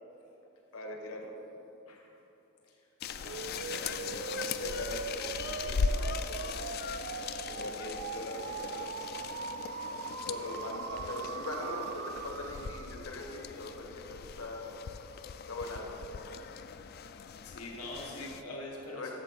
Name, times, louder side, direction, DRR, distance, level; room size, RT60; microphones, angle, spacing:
voice 1, 0.7-1.3 4.0-4.2 4.6-6.8 7.5-9.1 10.3-14.8 15.5-16.4 18.9-19.1, left 2 dB, 70° left, 1 dB, 1.3 m, -42 dB
sound 1, 3.0-18.4, left 5 dB, 45° left, 0.3 m, -39 dB
voice 2, 3.1-4.3 17.1-19.1, left 1 dB, 90° left, -2 dB, 1.5 m, -44 dB
sound 2, 3.2-13.1, right 5 dB, 55° right, 0.4 m, -40 dB
13.0 x 7.3 x 4.1 m, 2.9 s
head